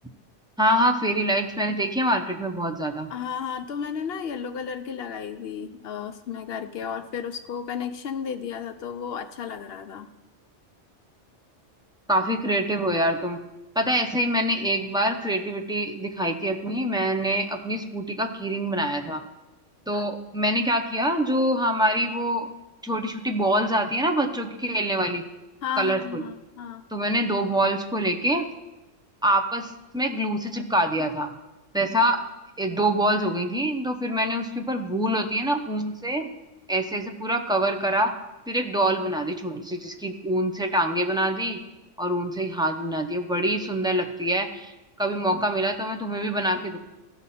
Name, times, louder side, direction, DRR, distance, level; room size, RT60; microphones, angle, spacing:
voice 1, 0.6-3.1 12.1-13.4 13.7-19.2 19.9-22.5 22.8-25.2 25.8-26.3 26.9-28.4 29.2-31.3 31.7-32.2 32.6-36.3 36.7-38.1 38.5-41.6 42.0-44.7 45.0-46.8, right 1 dB, 5° right, 3 dB, 0.5 m, -25 dB
voice 2, 3.1-10.1 19.9-20.0 25.6-26.8, left 7 dB, 60° left, 9 dB, 0.7 m, -33 dB
15.0 x 5.9 x 4.2 m, 1.0 s
omnidirectional pair, 1.2 m